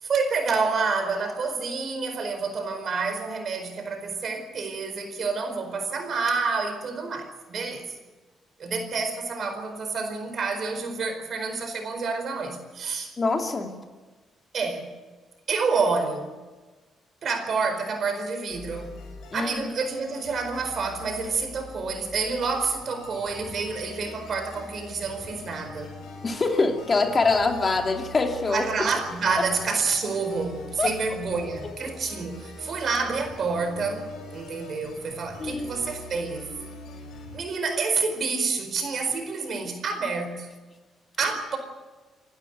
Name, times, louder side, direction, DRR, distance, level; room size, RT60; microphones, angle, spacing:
voice 1, 0.0-7.9 8.6-13.1 14.5-14.9 15.5-16.3 17.2-19.0 19.3-26.0 28.5-36.4 37.3-40.5 41.2-41.6, right 4 dB, 55° right, 6 dB, 4.6 m, -28 dB
voice 2, 13.2-13.8 19.3-19.7 26.2-28.7 29.4-29.5 30.8-31.0 35.4-35.7, left 3 dB, 35° left, 4 dB, 2.7 m, -24 dB
sound 1, 18.5-37.4, left 3 dB, 75° left, 5.4 m, -43 dB
28.5 x 12.0 x 9.4 m, 1.3 s
cardioid pair, 90°, 0 cm